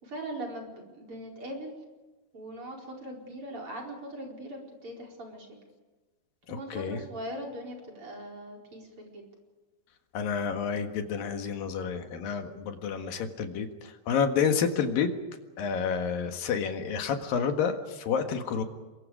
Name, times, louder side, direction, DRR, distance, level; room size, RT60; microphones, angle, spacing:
voice 1, 0.0-1.7 2.3-5.6 6.5-9.2, right 1 dB, 30° right, 0 dB, 5.2 m, -40 dB
voice 2, 6.5-7.0 10.1-15.1 15.6-18.6, left 6 dB, 65° left, 6 dB, 3.2 m, -29 dB
28.0 x 23.5 x 5.0 m, 1.2 s
omnidirectional pair, 4.8 m